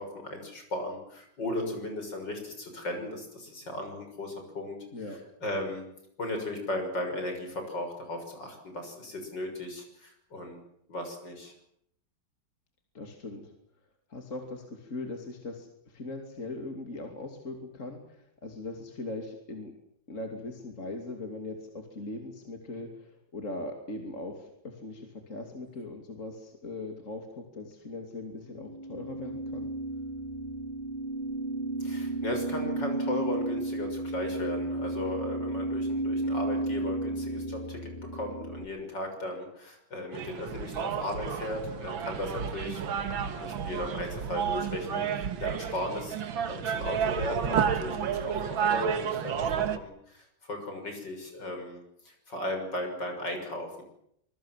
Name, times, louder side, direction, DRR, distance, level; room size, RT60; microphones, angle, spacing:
voice 1, 0.0-4.8 5.4-5.9 6.2-10.6 10.9-11.5 31.8-42.8 43.4-46.2 46.5-53.8, left 1 dB, 65° left, 4 dB, 7.2 m, -36 dB
voice 2, 12.9-13.5 14.1-19.7 20.1-29.7, left 2 dB, 40° left, 3 dB, 3.2 m, -40 dB
sound 1, 28.5-38.7, right 2 dB, 30° right, 2.6 m, -33 dB
sound 2, 40.1-49.8, right 7 dB, 85° right, 2.3 m, -31 dB
26.5 x 21.5 x 7.6 m, 0.73 s
omnidirectional pair, 2.1 m